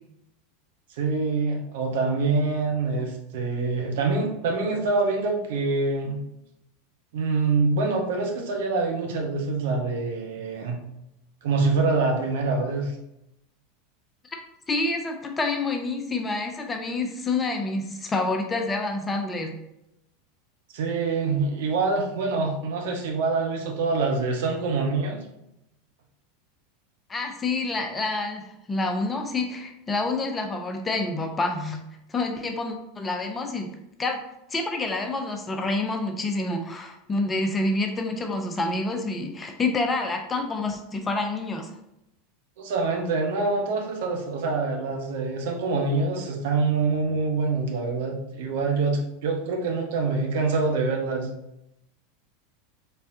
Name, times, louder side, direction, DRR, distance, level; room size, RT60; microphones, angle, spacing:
voice 1, 1.0-6.2 7.1-10.8 11.4-12.9 20.7-25.2 42.6-51.3, right 3 dB, 60° right, 2 dB, 0.7 m, -25 dB
voice 2, 14.7-19.5 27.1-31.8 32.1-33.7 34.0-34.2 34.5-41.7, left 2 dB, 20° left, 4 dB, 0.6 m, -28 dB
4.3 x 3.4 x 2.6 m, 0.83 s
figure-of-eight pair, 85°, 0 cm